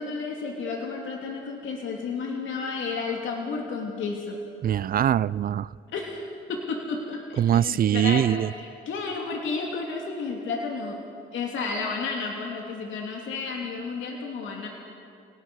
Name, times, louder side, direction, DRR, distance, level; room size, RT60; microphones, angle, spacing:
voice 1, 0.0-4.4 5.9-11.0 11.3-14.7, left 4 dB, 75° left, 0 dB, 3.1 m, -32 dB
voice 2, 4.6-5.7 7.4-8.5, right 10 dB, 50° right, 21 dB, 0.4 m, -22 dB
29.0 x 18.5 x 6.4 m, 2.4 s
cardioid pair, 90°, 20 cm